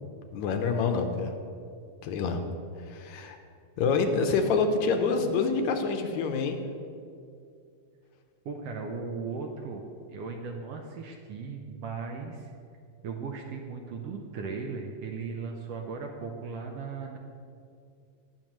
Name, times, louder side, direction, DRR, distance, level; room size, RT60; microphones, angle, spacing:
voice 1, 0.3-1.3 2.0-2.4 2.9-3.4 3.8-6.6, left 4 dB, 80° left, 6 dB, 2.1 m, -26 dB
voice 2, 8.4-9.8 10.1-12.5 13.0-17.2, right 4 dB, 75° right, 2 dB, 1.5 m, -37 dB
19.0 x 6.6 x 3.1 m, 2.4 s
omnidirectional pair, 3.3 m